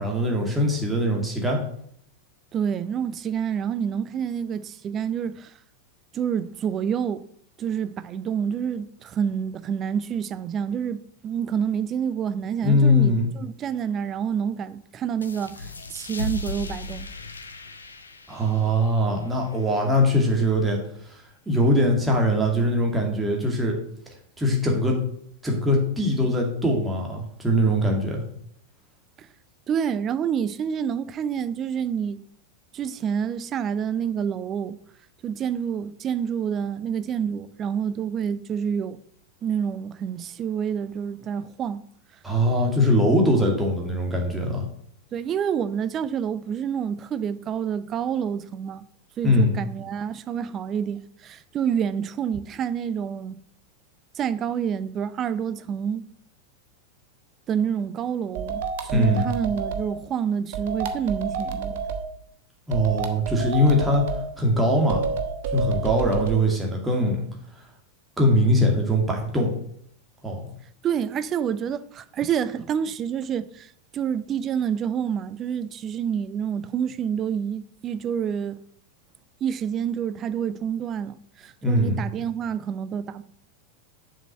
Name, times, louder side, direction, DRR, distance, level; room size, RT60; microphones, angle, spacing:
voice 1, 0.0-1.6 12.6-13.3 18.3-20.8 21.1-23.8 24.4-25.0 25.4-28.2 42.2-44.7 49.2-49.5 58.9-59.3 62.7-65.0 65.5-67.2 68.2-69.5 70.2-70.5 81.6-82.0, equal, 10° right, 2.4 m, -22 dB
voice 2, 2.5-5.5 6.1-7.2 7.6-17.1 29.2-29.3 29.7-32.2 32.7-34.8 35.2-39.0 39.4-41.8 45.1-48.9 49.2-53.4 54.2-56.0 57.5-61.8 70.8-78.6 79.4-83.2, right 8 dB, 30° right, 0.6 m, -28 dB
sound 1, 15.2-20.4, left 3 dB, 75° left, 0.9 m, -37 dB
sound 2, 58.4-59.9 60.5-62.0 62.7-64.2 64.9-66.4, right 5 dB, 50° right, 1.1 m, -29 dB
7.3 x 5.8 x 7.5 m
figure-of-eight pair, 90°, 0 cm